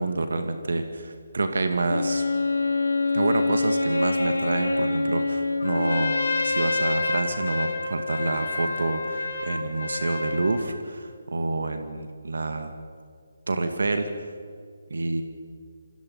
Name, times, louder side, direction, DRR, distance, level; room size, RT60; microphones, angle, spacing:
voice 1, 0.0-2.2 3.1-6.1 6.4-12.7 13.5-14.1 14.9-15.2, right 2 dB, 60° right, 7 dB, 2.1 m, -28 dB
Wind instrument woodwind instrument, 1.9-6.7, left 3 dB, 75° left, 2.8 m, -25 dB
Trumpet, 5.6-10.6, left 3 dB, 55° left, 3.3 m, -29 dB
28.0 x 26.5 x 5.7 m, 2.1 s
figure-of-eight pair, 145°, 0 cm